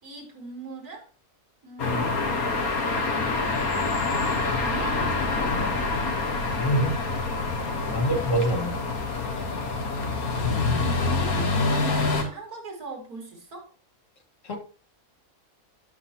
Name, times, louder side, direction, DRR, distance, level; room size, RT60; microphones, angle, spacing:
voice 1, 0.0-1.0 1.6-2.6 4.5-5.6 7.8-8.1 9.5-10.0 10.7-13.7, right 2 dB, 80° right, 2 dB, 3.1 m, -39 dB
sound 1, 1.8-12.2, left 3 dB, 75° left, 1.8 m, -26 dB
voice 2, 6.5-6.9 7.9-8.8 10.4-10.7 14.4-14.6, right 1 dB, 60° left, 3 dB, 2.0 m, -26 dB
13.0 x 5.9 x 2.9 m, 0.40 s
omnidirectional pair, 1.5 m